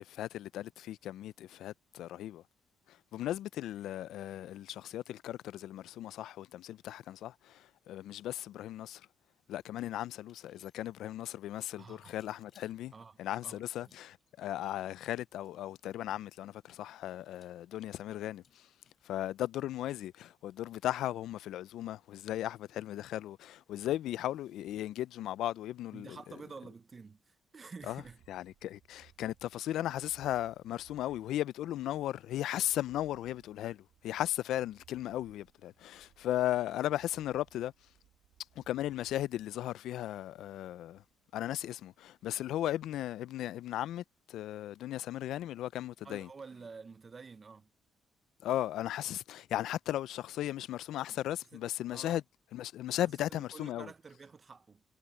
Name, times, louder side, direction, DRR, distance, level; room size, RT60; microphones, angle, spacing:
voice 1, 0.0-2.4 2.9-9.1 9.5-12.9 13.2-18.7 19.0-26.2 27.9-28.0 28.3-37.7 38.6-41.0 41.3-46.3 48.4-52.2 52.5-53.9, left 13 dB, 85° left, 0.4 m, -36 dB
sound 1, 10.2-11.1 12.1-12.8 13.7-14.2 15.3-16.1 17.2-19.1, left 7 dB, 55° left, 5.8 m, -68 dB
voice 2, 11.8-12.1 12.9-13.2 13.4-13.9 25.9-28.2 46.0-47.7 51.5-51.6 51.9-52.2 53.3-54.8, right 4 dB, 35° right, 0.8 m, -50 dB
sound 2, 27.8-43.1, right 12 dB, 85° right, 2.1 m, -66 dB
cardioid pair, 90°, 0 cm